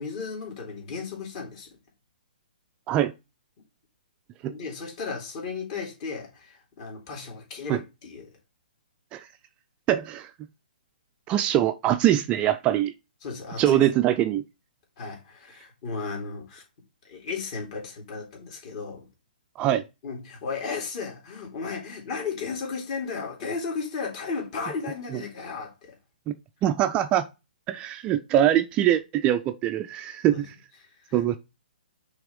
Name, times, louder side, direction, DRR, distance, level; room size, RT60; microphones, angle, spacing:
voice 1, 0.0-1.8 4.5-8.3 13.2-13.9 15.0-16.6 17.0-19.1 20.0-25.9 30.3-30.4 30.8-31.3, left 5 dB, 40° left, 2.7 m, -35 dB
voice 2, 9.9-10.3 11.3-12.9 13.6-14.4 19.6-19.8 26.3-26.4 26.6-27.2 27.7-30.5 31.1-31.4, right 12 dB, 20° right, 0.4 m, -23 dB
5.9 x 3.4 x 5.1 m
hypercardioid pair, 140°, 5 cm